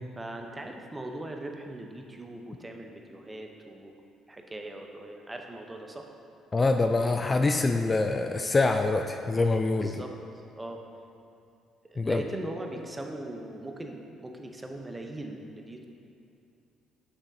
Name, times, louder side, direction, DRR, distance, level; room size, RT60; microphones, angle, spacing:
voice 1, 0.2-3.9 4.3-6.1 9.8-10.1 10.6-10.8 11.8-15.9, right 1 dB, 20° right, 3 dB, 0.7 m, -40 dB
voice 2, 6.5-10.0 12.0-12.2, left 3 dB, 30° left, 5 dB, 0.3 m, -25 dB
6.2 x 6.2 x 2.7 m, 2.7 s
supercardioid pair, 65°, 0 cm